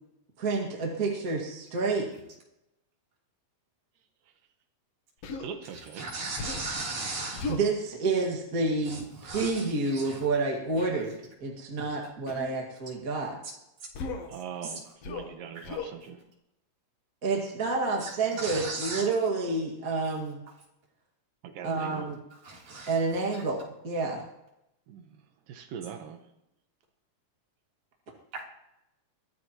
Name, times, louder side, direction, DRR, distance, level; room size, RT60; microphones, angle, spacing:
voice 1, 0.4-2.1 7.5-11.2 11.4-13.4 17.2-20.4 21.6-22.2 22.9-24.3, right 3 dB, 30° right, -1 dB, 2.1 m, -29 dB
Human voice, 5.2-5.5 6.4-6.8 7.4-7.7 9.3-9.6 10.8-11.1 12.3-12.6 13.9-14.3 15.0-15.3 15.6-15.9, left 4 dB, 60° left, 2.2 m, -36 dB
voice 2, 5.4-6.1 14.2-16.2 18.3-18.4 21.4-22.1 24.9-26.3, right 7 dB, 85° right, 6 dB, 2.8 m, -42 dB
voice 3, 6.0-7.5 8.9-9.0 9.2-9.7 9.9-10.2 18.0-18.1 18.4-19.0 22.4-22.9 28.3-28.4, right 3 dB, 60° right, -3 dB, 4.9 m, -36 dB
22.5 x 14.5 x 3.1 m, 0.86 s
omnidirectional pair, 3.9 m